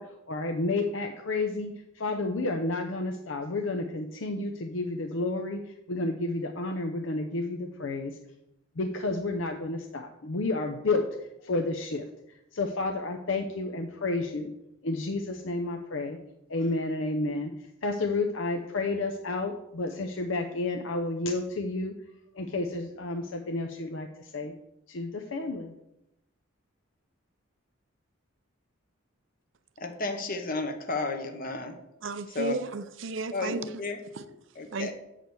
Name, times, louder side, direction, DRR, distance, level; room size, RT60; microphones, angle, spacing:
voice 1, 0.0-8.1 8.8-11.1 11.4-12.0 12.5-14.5 14.8-16.2 16.5-17.5 17.8-21.9 22.3-24.5 24.9-25.7, left 2 dB, 70° left, 4 dB, 0.7 m, -31 dB
voice 2, 29.8-31.8 32.3-32.6 33.3-34.0 34.5-34.9, left 3 dB, 40° left, 6 dB, 0.9 m, -32 dB
voice 3, 32.0-33.8 34.7-34.9, right 3 dB, 65° right, 12 dB, 0.6 m, -33 dB
7.6 x 5.0 x 6.9 m, 0.85 s
head